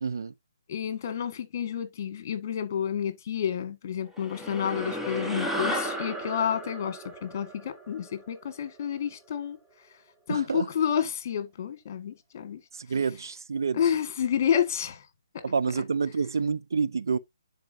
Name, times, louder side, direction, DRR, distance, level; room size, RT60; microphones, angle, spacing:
voice 1, 0.0-0.3 10.3-10.7 12.7-13.8 15.4-17.2, right 5 dB, 70° right, 0.6 m, -28 dB
voice 2, 0.7-9.6 10.3-12.6 13.7-15.0, left 8 dB, 45° left, 1.8 m, -29 dB
sound 1, 4.2-8.8, equal, ahead, 0.9 m, -34 dB
10.5 x 4.4 x 2.7 m
hypercardioid pair, 145°, 2 cm